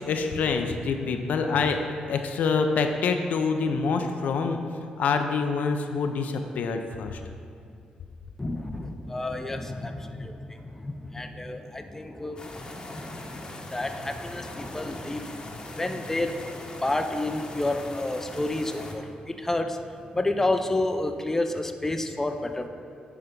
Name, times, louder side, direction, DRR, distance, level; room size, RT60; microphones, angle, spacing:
voice 1, 0.0-1.8 2.1-7.2, left 5 dB, 75° left, 6 dB, 0.5 m, -26 dB
voice 2, 8.4-12.4 12.9-16.3 16.8-19.8 20.1-22.7, left 2 dB, 15° left, 6 dB, 0.5 m, -30 dB
sound 1, 12.4-18.9, left 2 dB, 30° left, 0.9 m, -40 dB
9.4 x 3.4 x 5.2 m, 2.4 s
cardioid pair, 85°, 3 cm